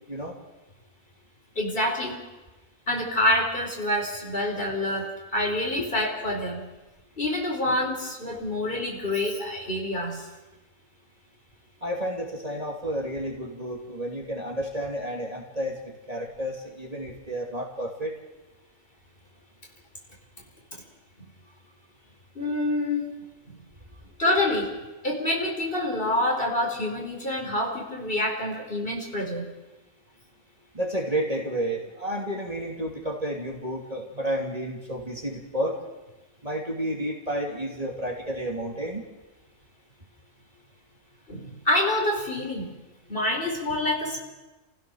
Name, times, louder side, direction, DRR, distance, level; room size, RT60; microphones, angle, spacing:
voice 1, 1.5-2.2 2.9-6.6 7.2-10.2 22.3-23.1 23.5-23.6 24.2-24.7 25.0-29.5 41.3-42.7 43.1-44.2, left 1 dB, 40° left, -1 dB, 4.7 m, -27 dB
voice 2, 11.8-18.1 30.7-35.7 36.4-39.0, right 1 dB, 25° right, -1 dB, 3.0 m, -31 dB
30.0 x 16.0 x 6.5 m, 1.1 s
omnidirectional pair, 1.5 m